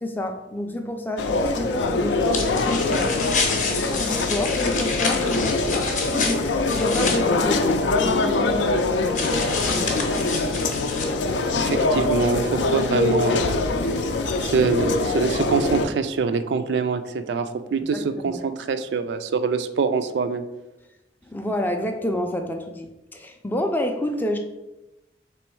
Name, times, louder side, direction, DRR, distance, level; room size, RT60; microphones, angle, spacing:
voice 1, 0.0-3.6 3.9-10.9 17.8-18.4 21.2-24.4, left 1 dB, 10° left, 4 dB, 0.3 m, -30 dB
sound 1, 1.2-15.9, left 3 dB, 85° left, 0.4 m, -23 dB
sound 2, 2.3-7.2 9.2-11.1, left 4 dB, 45° left, 0.6 m, -28 dB
sound 3, 5.2-15.3, right 3 dB, 90° right, 0.8 m, -44 dB
voice 2, 11.6-13.6 14.4-20.4, right 5 dB, 70° right, 10 dB, 0.3 m, -24 dB
3.4 x 3.1 x 4.5 m, 1.0 s
head